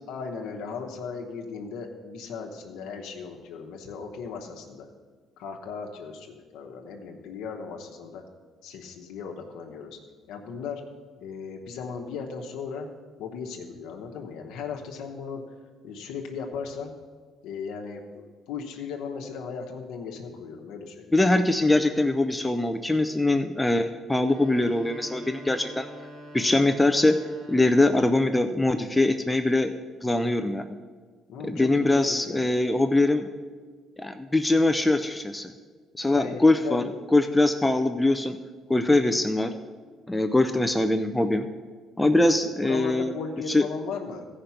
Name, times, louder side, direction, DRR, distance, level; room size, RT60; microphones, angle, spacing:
voice 1, 0.1-4.9 5.4-8.2 8.6-10.0 10.3-10.8 11.2-12.9 13.2-15.4 15.8-16.9 17.4-21.1 31.3-32.4 36.1-36.9 42.3-44.3, left 5 dB, 85° left, 1 dB, 0.9 m, -37 dB
voice 2, 21.1-25.9 26.3-27.2 27.5-29.7 30.0-30.6 31.4-33.3 34.0-35.5 36.0-36.8 37.1-38.4 38.7-39.5 40.1-41.5 42.0-43.1 43.5-43.7, left 2 dB, 10° left, 6 dB, 0.4 m, -22 dB
sound 1, 24.2-28.2, equal, 75° right, 1.8 m, -45 dB
14.5 x 5.1 x 5.7 m, 1.5 s
cardioid pair, 115°, 0 cm